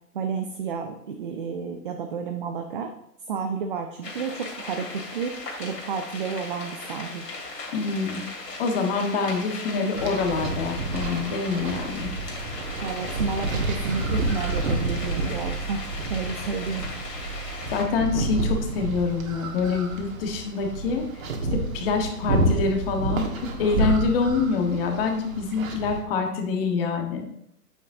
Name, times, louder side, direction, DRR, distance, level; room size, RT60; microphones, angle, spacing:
voice 1, 0.1-2.9 3.3-5.3 5.6-7.3 12.8-15.8 16.1-16.9, right 5 dB, 35° right, 5 dB, 0.5 m, -31 dB
sound 1, 4.0-17.8, left 3 dB, 80° left, 2.6 m, -37 dB
voice 2, 7.7-8.2 8.6-12.2 17.7-21.0 21.5-27.3, left 4 dB, 35° left, 3 dB, 1.4 m, -26 dB
sound 2, 9.9-26.0, right 2 dB, 55° right, 1.6 m, -29 dB
8.8 x 7.3 x 2.7 m, 0.76 s
figure-of-eight pair, 130°, 49 cm